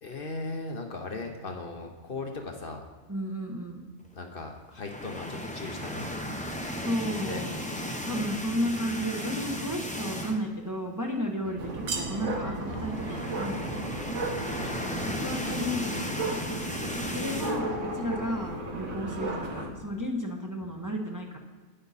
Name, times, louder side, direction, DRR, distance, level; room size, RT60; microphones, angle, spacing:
voice 1, 0.0-2.8 4.1-6.4 7.2-7.4 11.4-11.6 14.6-15.3 16.8-17.1, left 3 dB, 50° left, 3 dB, 1.0 m, -38 dB
voice 2, 3.1-3.9 6.8-13.8 14.6-14.7 15.1-16.2 17.1-21.4, equal, 15° right, 1 dB, 0.9 m, -33 dB
sound 1, 4.8-10.6 11.0-11.1 11.4-11.5 12.6-17.6, equal, 10° left, 0.7 m, -35 dB
sound 2, 11.6-19.7, right 2 dB, 80° right, 1.6 m, -34 dB
9.6 x 8.9 x 4.1 m, 1.3 s
omnidirectional pair, 1.3 m